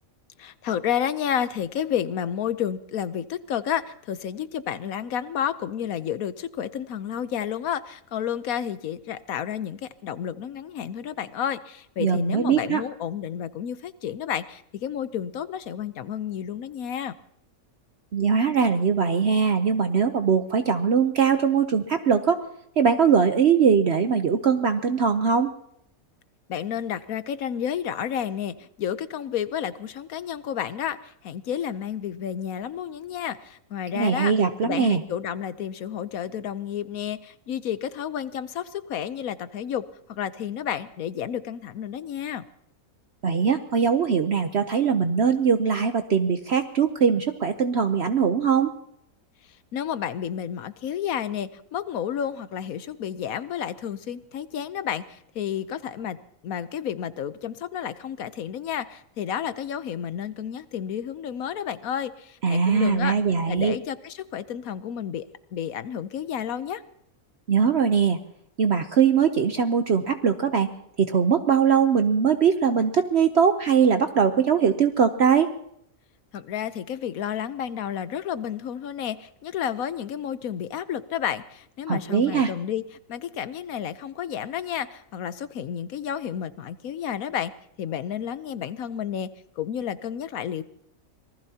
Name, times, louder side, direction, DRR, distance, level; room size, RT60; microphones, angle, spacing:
voice 1, 0.4-17.2 26.5-34.3 34.6-39.8 40.1-42.4 49.7-56.2 56.4-63.2 63.5-65.2 65.5-66.8 76.3-82.8 83.1-87.5 87.8-89.3 89.6-90.6, left 9 dB, 75° left, 14 dB, 1.2 m, -31 dB
voice 2, 12.0-12.8 18.1-22.4 22.8-25.5 33.9-35.0 43.2-48.7 62.4-63.7 67.5-68.2 68.6-70.7 71.0-75.5 81.9-82.5, right 6 dB, 55° right, 8 dB, 0.9 m, -21 dB
26.0 x 19.5 x 2.8 m, 0.73 s
omnidirectional pair, 1.5 m